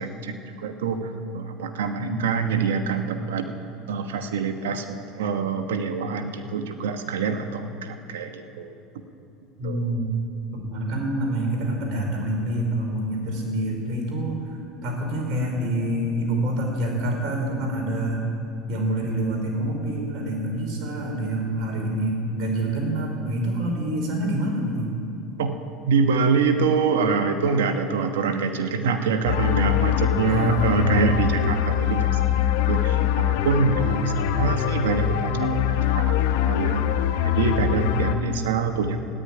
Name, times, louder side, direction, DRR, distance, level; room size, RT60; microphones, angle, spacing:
voice 1, 0.0-3.5 3.9-8.7 9.6-9.9 25.4-25.6 25.9-32.2 32.7-36.8 37.2-39.0, right 5 dB, 90° right, 6 dB, 1.3 m, -25 dB
voice 2, 2.0-2.6 9.6-10.1 10.5-18.3 18.7-24.9 30.3-31.0 37.8-38.3, right 1 dB, 55° right, 0 dB, 5.0 m, -27 dB
sound 1, 29.2-38.1, left 10 dB, 75° left, 1.0 m, -23 dB
14.0 x 10.0 x 9.7 m, 2.7 s
supercardioid pair, 105°, 0 cm